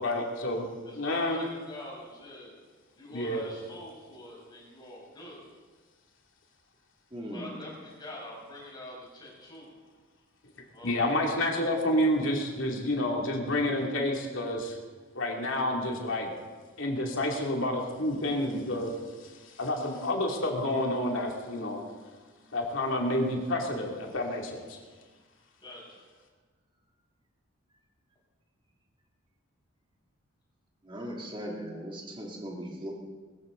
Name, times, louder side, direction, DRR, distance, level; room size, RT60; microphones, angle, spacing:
voice 1, 0.0-0.7 0.9-1.4 3.1-3.4 10.8-14.8 15.1-16.3 16.8-18.9 19.2-21.8 22.5-24.8, left 1 dB, 65° left, 0 dB, 2.6 m, -29 dB
voice 2, 0.8-2.5 2.9-5.4 7.2-9.7 10.7-11.3 25.6-26.0, left 1 dB, 20° left, -5 dB, 5.9 m, -45 dB
voice 3, 7.1-7.6 30.8-32.9, equal, 25° right, -1 dB, 2.3 m, -38 dB
21.0 x 15.0 x 3.9 m, 1.4 s
head